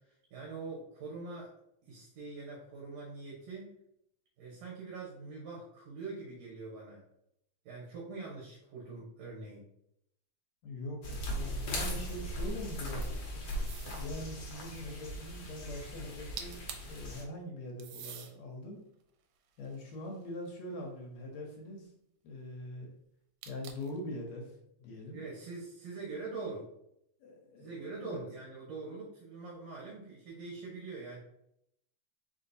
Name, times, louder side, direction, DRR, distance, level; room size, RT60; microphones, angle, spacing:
voice 1, 0.0-1.5 1.8-3.7 4.4-7.0 7.7-9.6 25.1-26.7 27.6-31.2, right 3 dB, 70° right, -4 dB, 2.0 m, -43 dB
voice 2, 10.6-13.2 13.9-16.6 16.9-18.8 19.6-21.9 22.2-22.9 23.5-25.2 27.2-28.2, left 1 dB, 75° left, 1 dB, 1.8 m, -43 dB
sound 1, 11.0-17.2, equal, 90° left, 1.0 m, -38 dB
sound 2, 13.6-14.2 16.1-16.2 16.4-17.0 17.8-18.3 19.0-20.5 23.4-24.0, right 8 dB, 85° right, 2.0 m, -46 dB
4.5 x 3.8 x 2.6 m, 0.76 s
omnidirectional pair, 3.4 m